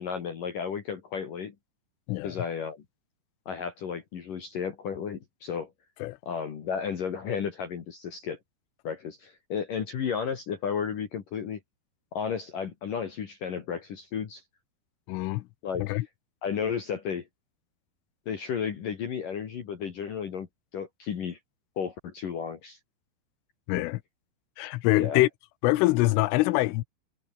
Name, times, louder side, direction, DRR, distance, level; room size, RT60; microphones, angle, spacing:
voice 1, 0.0-1.5 2.2-2.8 3.5-5.7 6.3-8.4 8.8-11.6 12.1-14.4 15.6-16.0 16.4-17.3 18.3-20.5 20.7-21.4 21.8-22.8 23.8-23.9 25.0-25.2, left 7 dB, 50° left, 3.3 m, -33 dB
voice 2, 15.1-15.5 15.8-16.1 23.7-24.0 24.6-25.3 25.6-26.8, left 19 dB, 85° left, 3.4 m, -24 dB
omnidirectional pair, 5.7 m